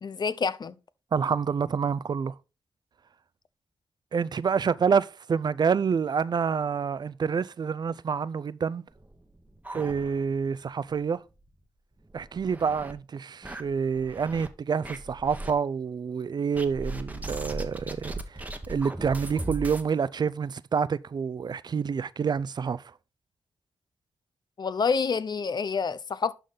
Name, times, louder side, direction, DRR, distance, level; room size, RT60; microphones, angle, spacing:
voice 1, 0.0-0.7 24.6-26.3, left 5 dB, 60° left, 0.6 m, -28 dB
voice 2, 1.1-2.3 4.1-8.8 9.7-11.2 12.1-22.8, right 6 dB, 55° right, 0.4 m, -28 dB
sound 1, 8.9-10.5 10.8-10.9 11.3-11.4 12.0-12.9 13.4-14.5 14.8-15.5 16.5-19.9, right 2 dB, 20° right, 1.1 m, -38 dB
11.5 x 3.9 x 3.8 m
cardioid pair, 60°, 8 cm